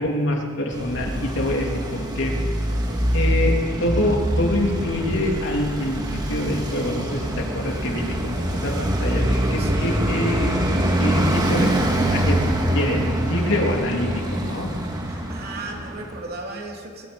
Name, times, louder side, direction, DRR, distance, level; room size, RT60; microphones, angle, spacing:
voice 1, 0.0-2.3 3.1-10.6 11.0-11.7 12.0-12.4 12.7-14.7, left 1 dB, 60° left, 0 dB, 3.2 m, -25 dB
Traffic noise roadway noise, 0.7-16.2, right 1 dB, 20° right, 2.2 m, -24 dB
voice 2, 2.7-3.1 9.6-10.0 11.6-11.7 15.0-17.1, right 2 dB, 45° right, 0 dB, 3.4 m, -36 dB
23.5 x 23.0 x 5.4 m, 2.1 s
head